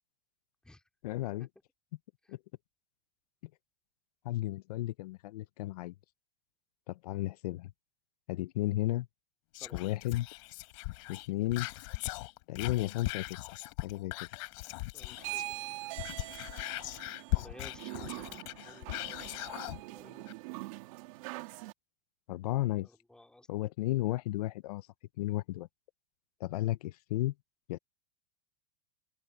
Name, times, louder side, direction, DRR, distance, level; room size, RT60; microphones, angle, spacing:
voice 1, 1.0-1.5 2.3-2.4 4.2-5.9 6.9-7.7 8.3-9.1 9.7-10.3 11.1-11.7 12.5-13.3 13.8-14.1 22.3-22.9 23.5-24.9 25.2-25.7 26.4-27.3 27.7-27.8, left 16 dB, 75° left, 0.5 m, -33 dB
Whispering, 9.5-15.5 15.9-19.8 20.3-20.4, left 21 dB, 55° left, 0.9 m, -39 dB
voice 2, 9.5-9.8 14.9-15.6 17.3-20.4 22.7-23.7, left 1 dB, 5° left, 3.4 m, -57 dB
sound 1, 15.2-21.7, right 22 dB, 60° right, 2.3 m, -43 dB
open air
supercardioid pair, 145°, 20 cm